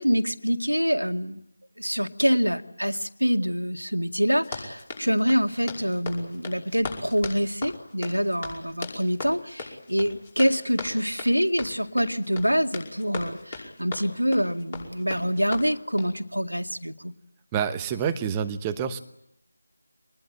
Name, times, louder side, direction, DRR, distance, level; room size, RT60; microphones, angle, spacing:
voice 1, 0.0-1.4 1.8-17.1, equal, 90° right, 6 dB, 2.0 m, -25 dB
Run, 4.3-16.2, left 4 dB, 20° left, 5.4 m, -38 dB
voice 2, 17.5-19.0, right 8 dB, 10° right, 9 dB, 1.0 m, -27 dB
24.5 x 20.0 x 8.9 m, 0.82 s
figure-of-eight pair, 165°, 0 cm